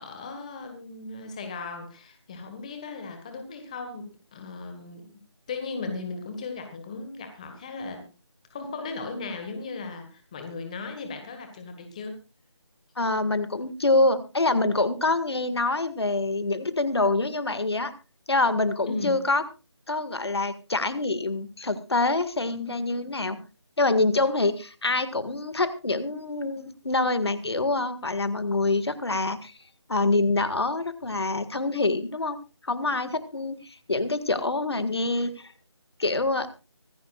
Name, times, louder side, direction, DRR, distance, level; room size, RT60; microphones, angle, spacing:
voice 1, 0.0-5.1 5.5-8.1 8.5-12.2 18.8-19.2, left 4 dB, 15° left, 6 dB, 1.5 m, -37 dB
voice 2, 13.0-17.9 18.3-19.4 19.9-23.4 23.8-29.5 29.9-32.4 32.6-35.5 36.0-36.5, left 2 dB, 60° left, 12 dB, 1.9 m, -25 dB
24.5 x 11.0 x 2.4 m, 0.32 s
figure-of-eight pair, 170°, 15 cm